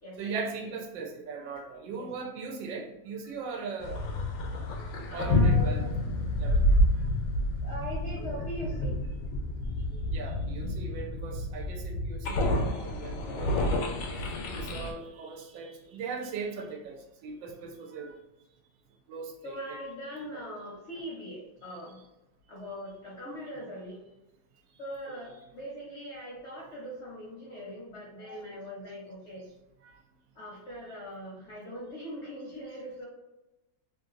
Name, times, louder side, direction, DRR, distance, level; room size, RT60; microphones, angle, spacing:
voice 1, 0.2-4.0 5.1-5.8 6.4-6.8 10.1-13.8 14.5-18.2 19.1-19.3, right 4 dB, 80° right, 2 dB, 1.3 m, -39 dB
sound 1, 3.8-14.9, left 1 dB, 80° left, 1.2 m, -28 dB
voice 2, 4.7-5.9 7.6-9.1 9.9-10.0 10.3-10.4 19.4-22.0 22.5-24.0 24.8-29.4 30.3-33.1, equal, 50° left, -5 dB, 0.9 m, -41 dB
3.2 x 2.6 x 2.4 m, 0.95 s
omnidirectional pair, 2.0 m